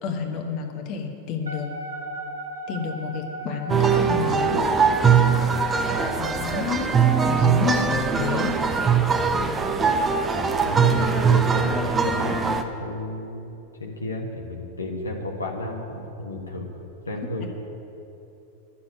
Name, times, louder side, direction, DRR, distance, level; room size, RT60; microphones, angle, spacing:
voice 1, 0.0-1.7 2.7-4.7 6.2-8.6 17.4-17.5, left 6 dB, 40° left, 2 dB, 1.3 m, -30 dB
Wind instrument woodwind instrument, 1.4-7.5, right 2 dB, 80° right, 1.7 m, -36 dB
sound 1, 3.7-12.6, right 6 dB, 20° right, 0.8 m, -21 dB
voice 2, 10.6-13.5 13.8-16.7 17.1-17.5, left 1 dB, 75° left, 1 dB, 1.4 m, -32 dB
11.5 x 7.1 x 9.8 m, 3.0 s
figure-of-eight pair, 90°, 0 cm